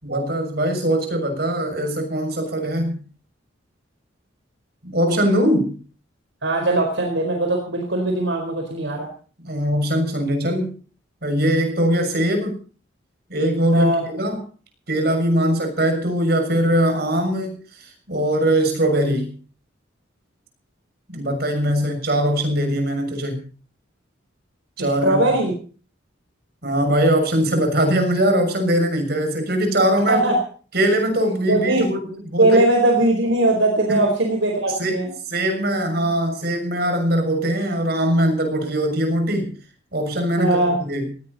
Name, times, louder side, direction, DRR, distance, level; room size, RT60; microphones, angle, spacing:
voice 1, 0.0-3.0 4.8-5.8 9.4-10.7 11.2-12.6 13.3-14.4 14.9-19.3 21.1-23.4 24.8-25.2 26.6-30.3 30.7-32.6 33.9-34.1 34.8-35.0 35.3-39.5 39.9-41.1, right 1 dB, 55° right, 5 dB, 6.6 m, -21 dB
voice 2, 6.4-9.1 13.7-14.0 24.8-25.5 30.0-30.4 31.5-31.9 32.4-35.1 40.4-40.8, right 1 dB, 70° right, 2 dB, 4.4 m, -20 dB
19.0 x 17.0 x 4.2 m, 0.40 s
head